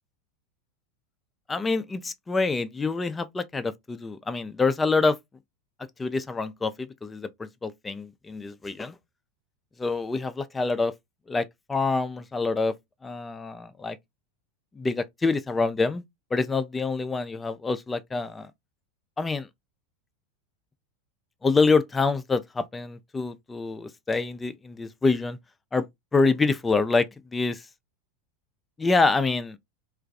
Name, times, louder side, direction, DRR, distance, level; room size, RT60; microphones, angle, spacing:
voice 1, 1.5-5.2 6.0-9.0 9.8-10.9 11.3-12.7 13.0-14.0 14.8-16.0 16.3-18.5 19.2-19.5 21.4-25.4 25.7-25.9 26.1-27.6 28.8-29.6, left 3 dB, 15° left, 0.3 m, -26 dB
2.4 x 2.2 x 2.5 m
figure-of-eight pair, 90°, 0 cm